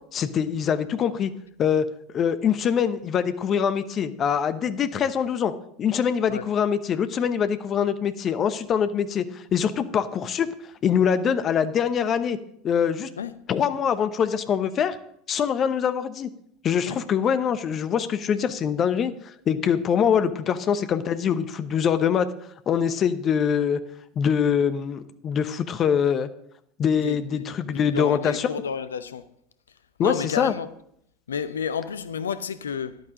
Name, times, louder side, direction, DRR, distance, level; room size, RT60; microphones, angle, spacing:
voice 1, 0.1-1.3 1.6-1.8 2.1-5.5 5.8-10.5 10.8-12.4 12.6-13.1 13.5-15.0 15.3-16.3 16.6-22.3 22.7-23.8 24.2-26.3 26.8-28.5 30.0-30.5, left 7 dB, 35° left, 0.9 m, -24 dB
voice 2, 27.0-29.2 30.0-30.7 31.3-33.0, left 6 dB, 75° left, 0.7 m, -31 dB
13.0 x 11.0 x 3.9 m
figure-of-eight pair, 75°, 0 cm